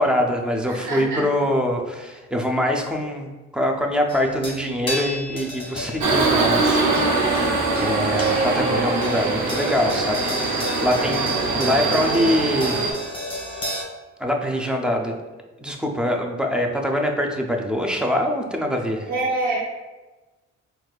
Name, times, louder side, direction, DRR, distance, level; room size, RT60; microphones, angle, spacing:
voice 1, 0.0-12.9 14.2-15.1 15.6-19.1, left 1 dB, 5° right, 1 dB, 0.4 m, -24 dB
voice 2, 0.6-1.2 11.0-11.3 19.1-19.5, right 2 dB, 85° right, -7 dB, 1.1 m, -27 dB
sound 1, 4.1-13.8, left 1 dB, 15° left, 0.8 m, -34 dB
Subway metro underground, 6.0-12.9, right 3 dB, 70° right, 0.7 m, -22 dB
4.1 x 2.3 x 2.3 m, 1.2 s
cardioid pair, 90°, 30 cm